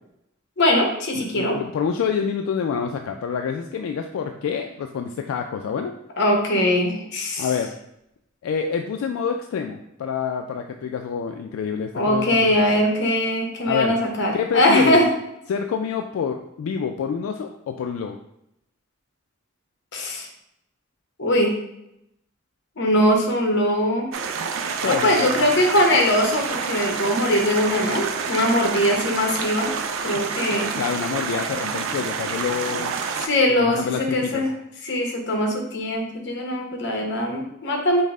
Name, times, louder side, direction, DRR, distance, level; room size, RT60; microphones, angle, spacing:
voice 1, 0.6-1.6 6.2-7.5 11.9-15.1 19.9-20.3 21.2-21.6 22.8-24.1 24.8-29.7 30.0-30.8 33.2-34.5 34.8-38.0, left 1 dB, 55° left, 1 dB, 0.9 m, -21 dB
voice 2, 1.1-5.9 7.4-7.7 8.4-12.5 13.7-14.0 14.3-15.0 15.5-18.2 24.8-25.3 30.4-32.9 33.5-34.5, left 6 dB, 80° left, 5 dB, 0.3 m, -27 dB
sound 1, 24.1-33.3, right 5 dB, 65° right, 0.4 m, -28 dB
5.3 x 2.1 x 3.6 m, 0.81 s
head